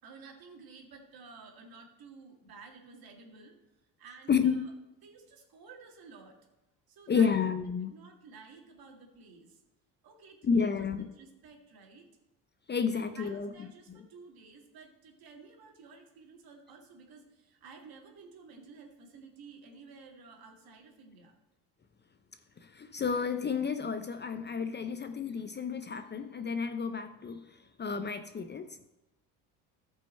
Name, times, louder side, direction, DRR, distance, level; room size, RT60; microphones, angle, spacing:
voice 1, 0.0-3.6 4.0-4.7 5.0-6.4 6.9-7.4 7.8-9.6 10.0-12.1 12.9-21.3, right 4 dB, 55° right, 2 dB, 2.2 m, -53 dB
voice 2, 4.3-4.7 7.1-7.9 10.4-11.1 12.7-13.5 13.9-14.1 22.6-28.9, left 6 dB, 25° left, 9 dB, 0.5 m, -31 dB
14.0 x 5.5 x 4.3 m, 0.96 s
supercardioid pair, 75°, 42 cm